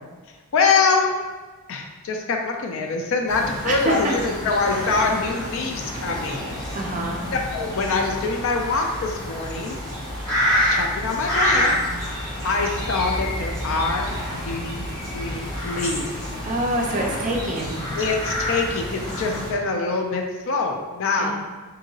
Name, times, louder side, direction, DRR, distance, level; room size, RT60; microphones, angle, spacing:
voice 1, 0.5-1.1 1.7-6.5 7.3-9.8 10.7-11.7 12.4-16.2 17.9-21.3, left 4 dB, 60° left, 2 dB, 0.4 m, -24 dB
sound 1, 3.3-19.5, equal, 15° left, 0.8 m, -28 dB
voice 2, 6.7-7.2 16.4-17.8 21.2-21.3, right 1 dB, 35° right, -1 dB, 0.4 m, -25 dB
2.8 x 2.7 x 2.7 m, 1.3 s
head